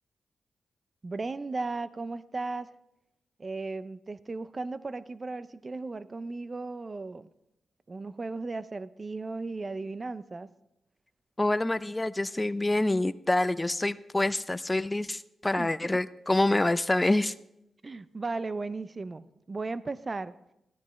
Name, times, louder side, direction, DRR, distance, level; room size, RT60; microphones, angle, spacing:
voice 1, 1.0-2.7 3.4-7.3 7.9-10.5 15.6-16.0 17.8-20.4, right 3 dB, 40° right, 16 dB, 0.5 m, -36 dB
voice 2, 11.4-17.3, left 2 dB, 20° left, 16 dB, 0.4 m, -26 dB
15.0 x 12.0 x 3.2 m, 0.85 s
cardioid pair, 55°, 0 cm